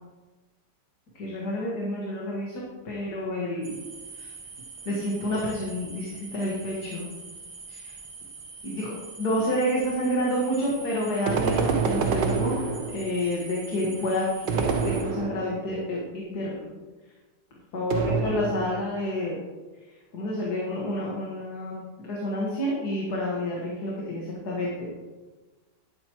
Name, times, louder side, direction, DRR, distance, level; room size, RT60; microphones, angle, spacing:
voice 1, 1.2-3.8 4.1-4.3 4.9-7.1 7.7-7.9 8.6-12.6 12.9-16.6 17.7-19.4 20.1-24.9, left 1 dB, 65° left, -4 dB, 2.2 m, -29 dB
sound 1, 3.6-15.0, right 4 dB, 70° right, 2.0 m, -44 dB
sound 2, 11.3-13.2 14.5-15.7 17.9-18.9, right 5 dB, 85° right, 1.6 m, -27 dB
11.5 x 10.5 x 3.0 m, 1.3 s
omnidirectional pair, 1.9 m